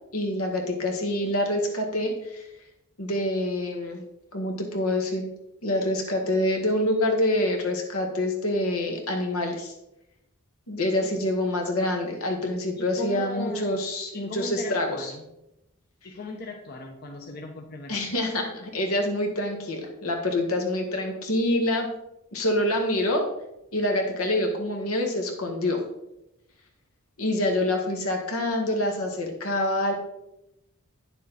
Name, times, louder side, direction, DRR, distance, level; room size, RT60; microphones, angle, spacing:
voice 1, 0.1-2.5 3.0-4.1 4.3-5.3 5.6-9.7 10.7-15.1 17.9-21.9 22.3-23.3 23.7-25.8 27.2-29.9, left 1 dB, 80° left, 2 dB, 1.8 m, -26 dB
voice 2, 12.8-13.8 14.1-15.3 16.0-18.0, left 1 dB, 45° left, 1 dB, 1.0 m, -37 dB
9.6 x 7.0 x 4.1 m, 0.86 s
head